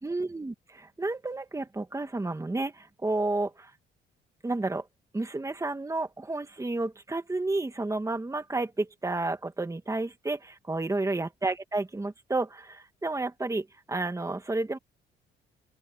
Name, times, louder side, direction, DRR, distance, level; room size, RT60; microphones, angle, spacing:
voice 1, 0.0-3.7 4.4-4.9 5.1-14.8, right 2 dB, 15° right, 2.3 m, -31 dB
open air
cardioid pair, 90°, 20 cm